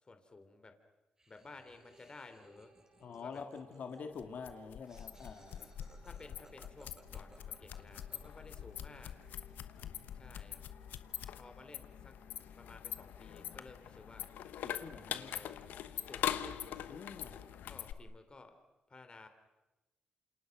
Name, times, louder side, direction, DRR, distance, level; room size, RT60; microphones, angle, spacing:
voice 1, 0.0-0.8 1.3-2.7 3.2-3.4 6.0-9.1 10.2-10.6 11.4-12.2 12.6-14.3 15.1-15.6 15.9-16.7 17.5-18.6 18.9-19.3, left 3 dB, 30° left, 7 dB, 3.2 m, -55 dB
Laughter, 1.2-8.7, right 1 dB, 20° right, 5.1 m, -64 dB
sound 1, 1.5-17.5, right 3 dB, 75° right, 7.3 m, -66 dB
voice 2, 3.0-5.7 14.6-15.4 16.9-17.4, left 5 dB, 65° left, 5 dB, 2.0 m, -46 dB
sound 2, 4.2-17.9, left 10 dB, 85° left, 1.1 m, -43 dB
28.5 x 27.5 x 6.0 m, 1.1 s
cardioid pair, 75°, 3 cm